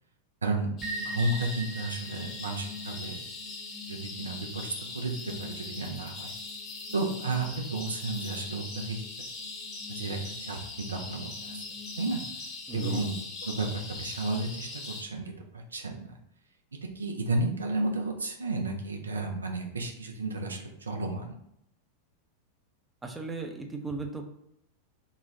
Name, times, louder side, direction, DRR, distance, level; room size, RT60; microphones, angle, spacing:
voice 1, 0.4-0.7 1.0-3.2 3.9-6.3 6.9-9.0 9.9-11.6 12.0-12.2 12.7-16.2 17.0-21.4, right 2 dB, 75° right, 2 dB, 0.6 m, -32 dB
sound 1, 0.8-15.0, left 3 dB, 35° left, 1.0 m, -41 dB
sound 2, 0.8-12.5, right 1 dB, 30° right, 1.0 m, -44 dB
voice 2, 12.7-13.1 23.0-24.3, right 3 dB, 10° right, 3 dB, 0.6 m, -36 dB
4.0 x 2.3 x 3.8 m, 0.76 s
figure-of-eight pair, 90°, 0 cm